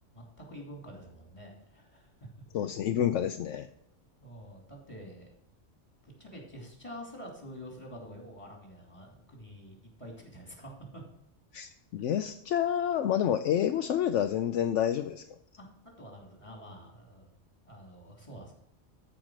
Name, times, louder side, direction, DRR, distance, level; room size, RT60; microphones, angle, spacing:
voice 1, 0.1-2.7 4.2-5.3 6.0-11.0 15.6-17.3 17.6-18.6, equal, 25° left, 1 dB, 3.0 m, -47 dB
voice 2, 2.5-3.7 11.5-15.2, left 10 dB, 75° left, 8 dB, 0.9 m, -28 dB
13.5 x 5.0 x 6.3 m, 0.75 s
omnidirectional pair, 1.3 m